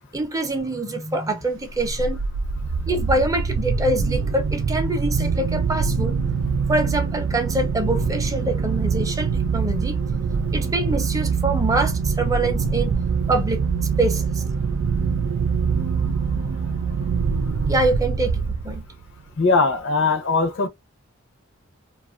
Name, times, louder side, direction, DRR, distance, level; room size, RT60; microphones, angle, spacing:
voice 1, 0.1-2.2 2.9-6.2 6.7-10.0 10.5-12.9 13.3-13.7 14.0-14.4 17.7-18.8, right 2 dB, 15° right, 0.5 m, -25 dB
sound 1, 1.7-19.0, right 5 dB, 75° right, 0.4 m, -24 dB
voice 2, 19.4-20.7, left 3 dB, 60° left, 0.6 m, -20 dB
2.4 x 2.3 x 2.4 m
head